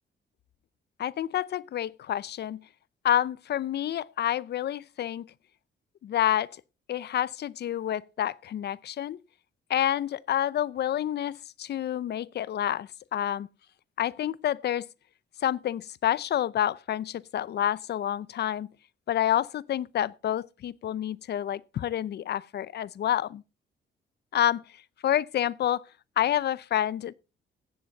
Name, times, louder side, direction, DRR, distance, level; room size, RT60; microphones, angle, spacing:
voice 1, 1.0-2.6 3.0-5.3 6.0-6.5 6.9-9.2 9.7-13.5 14.0-14.9 15.4-18.7 19.1-23.4 24.3-24.6 25.0-25.8 26.2-27.1, left 11 dB, 55° left, 0.6 m, -28 dB
14.5 x 9.3 x 3.9 m
cardioid pair, 90°, 20 cm